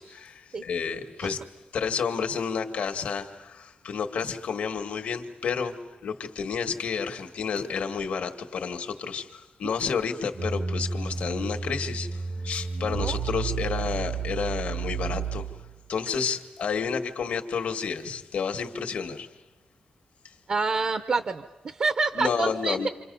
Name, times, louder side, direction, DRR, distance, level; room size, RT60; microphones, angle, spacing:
voice 1, 0.0-1.4 1.7-5.8 6.0-15.5 15.9-19.3 22.1-22.9, left 6 dB, 75° left, 5 dB, 1.6 m, -30 dB
sound 1, 10.3-15.8, right 5 dB, 70° right, 1.5 m, -31 dB
voice 2, 20.5-22.9, right 4 dB, 45° right, 9 dB, 0.7 m, -27 dB
27.5 x 27.5 x 5.4 m, 1.2 s
wide cardioid pair, 155°, 2 cm